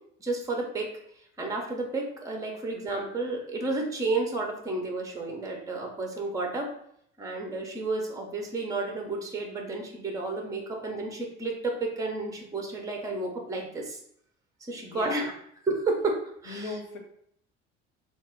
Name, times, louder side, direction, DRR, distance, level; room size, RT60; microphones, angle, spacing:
voice 1, 0.2-0.9 1.4-6.7 7.2-14.0 14.7-15.3 15.7-16.7, right 3 dB, 10° right, 2 dB, 0.6 m, -31 dB
voice 2, 14.8-15.3 16.5-17.0, left 3 dB, 60° left, 2 dB, 0.7 m, -38 dB
2.9 x 2.1 x 3.4 m, 0.70 s
figure-of-eight pair, 60°, 38 cm